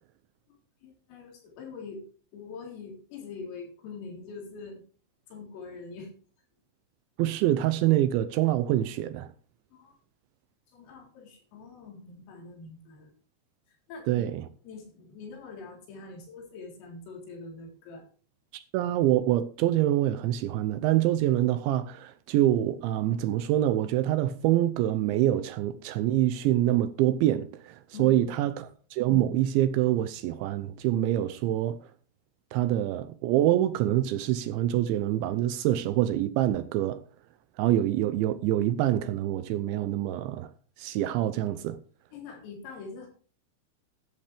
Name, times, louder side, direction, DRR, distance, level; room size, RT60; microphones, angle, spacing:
voice 1, 0.8-2.0 2.3-4.8 5.3-6.1 9.7-9.9 10.7-13.1 13.7-14.3 14.6-18.1 27.9-28.6 42.1-43.1, left 4 dB, 85° left, 6.6 m, -43 dB
voice 2, 7.2-9.3 14.1-14.4 18.5-28.5 28.9-31.8 32.5-37.0 37.6-40.5 40.8-41.8, right 13 dB, 80° right, 2.7 m, -25 dB
14.0 x 12.0 x 3.4 m
omnidirectional pair, 5.8 m